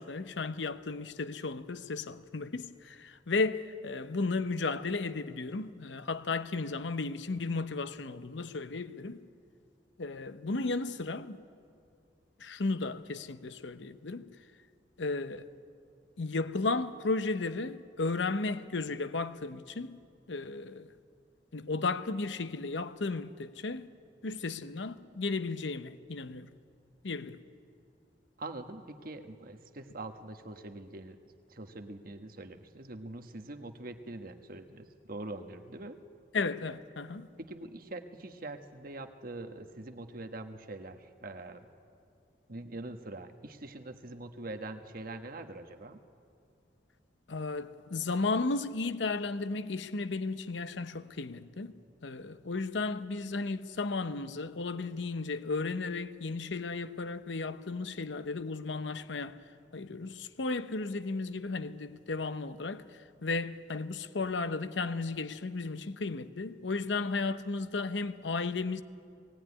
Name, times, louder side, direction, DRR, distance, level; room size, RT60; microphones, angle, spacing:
voice 1, 0.0-9.2 10.0-11.4 12.4-14.2 15.0-15.5 16.2-20.0 20.3-20.9 21.5-23.9 24.2-26.5 27.0-27.4 36.3-37.3 47.3-51.7 52.0-59.4 59.7-62.8 63.2-68.8, left 3 dB, 85° left, 0.8 m, -34 dB
voice 2, 28.4-31.2 31.5-36.0 37.4-41.6 42.5-46.0, right 2 dB, 55° right, 1.3 m, -43 dB
19.0 x 16.5 x 9.7 m
head